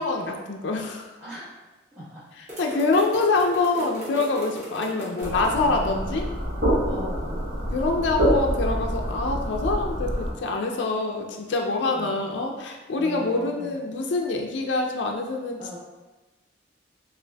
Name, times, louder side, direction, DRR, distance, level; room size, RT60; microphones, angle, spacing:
voice 1, 0.0-1.1 2.4-6.3 7.7-15.8, left 3 dB, 70° left, 1 dB, 0.4 m, -25 dB
voice 2, 1.2-1.6 1.9-2.2 3.8-3.9 4.8-6.1 6.8-7.4 11.9-12.2 13.0-13.8 15.6-15.8, equal, 10° right, -13 dB, 0.9 m, -39 dB
sound 1, 2.5-5.5, equal, 35° right, 1.2 m, -37 dB
sound 2, 5.2-10.3, equal, 70° right, 1.2 m, -26 dB
5.8 x 2.4 x 2.2 m, 1.1 s
head